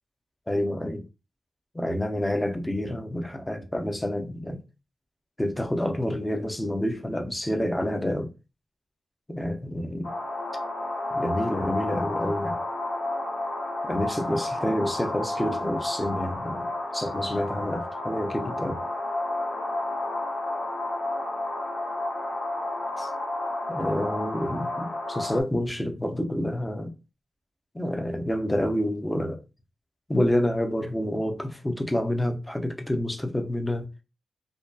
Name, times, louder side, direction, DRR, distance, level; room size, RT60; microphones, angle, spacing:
voice 1, 0.5-1.0 1.7-4.6 5.4-8.3 9.3-10.1 11.1-12.6 13.9-16.7 16.9-18.8 23.0-23.1 23.7-26.9 27.7-29.4 30.1-33.9, left 1 dB, 15° left, 0.5 m, -28 dB
sound 1, 10.0-25.4, left 2 dB, 85° left, 0.6 m, -31 dB
2.6 x 2.2 x 2.3 m
cardioid pair, 70°, 0 cm